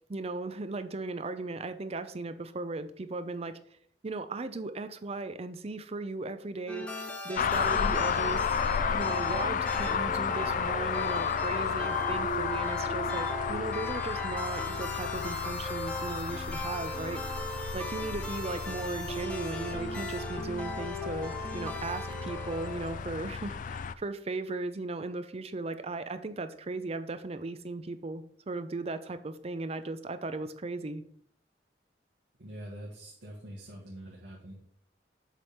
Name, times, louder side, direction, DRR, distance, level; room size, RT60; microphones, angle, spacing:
voice 1, 0.1-3.6 4.0-6.9 7.2-8.4 8.9-17.2 17.7-31.0, right 3 dB, 35° right, 11 dB, 0.5 m, -37 dB
sound 1, 6.7-23.3, left 1 dB, 5° left, 0.9 m, -38 dB
sound 2, 7.4-23.9, left 6 dB, 45° left, 0.3 m, -33 dB
voice 2, 32.4-34.5, right 1 dB, 75° right, -3 dB, 1.4 m, -44 dB
7.5 x 3.4 x 5.5 m, 0.62 s
head